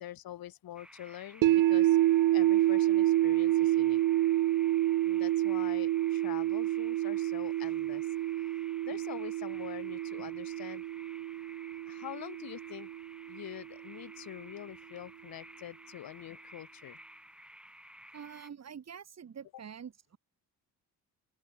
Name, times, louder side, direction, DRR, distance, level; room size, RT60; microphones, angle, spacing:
voice 1, 0.0-2.0 2.3-4.0 5.0-8.1 8.5-8.6 8.8-10.8 11.9-12.9 13.3-17.0, left 12 dB, 75° left, 4.3 m, -45 dB
sound 1, 0.8-18.5, equal, 5° right, 5.9 m, -54 dB
sound 2, 1.4-13.5, right 14 dB, 60° right, 0.7 m, -28 dB
voice 2, 18.1-20.2, right 7 dB, 45° right, 3.4 m, -46 dB
open air
cardioid pair, 100°, 36 cm